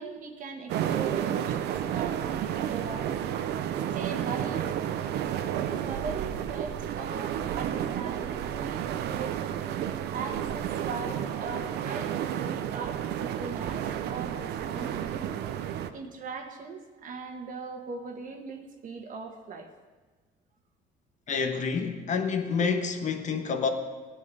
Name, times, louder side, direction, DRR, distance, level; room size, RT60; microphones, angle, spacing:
voice 1, 0.0-3.3 3.9-4.8 5.5-9.5 10.1-15.4 15.9-19.7, right 5 dB, 50° right, 4 dB, 1.4 m, -39 dB
sound 1, 0.7-15.9, right 10 dB, 75° right, 0.7 m, -31 dB
voice 2, 21.3-23.7, left 5 dB, 45° left, 6 dB, 1.3 m, -28 dB
17.0 x 9.6 x 4.1 m, 1.3 s
cardioid pair, 110°, 17 cm